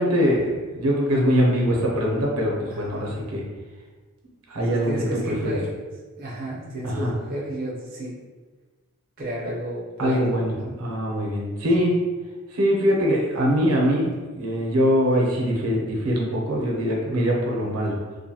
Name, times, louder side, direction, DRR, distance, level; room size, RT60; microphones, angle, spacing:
voice 1, 0.0-3.4 4.5-5.6 6.8-7.1 10.0-10.5 10.8-12.0 12.5-18.0, equal, 85° right, -2 dB, 0.6 m, -22 dB
voice 2, 2.7-3.2 4.9-5.7 6.2-8.1 9.2-10.8, right 1 dB, 40° right, -5 dB, 0.5 m, -32 dB
2.5 x 2.2 x 2.7 m, 1.3 s
head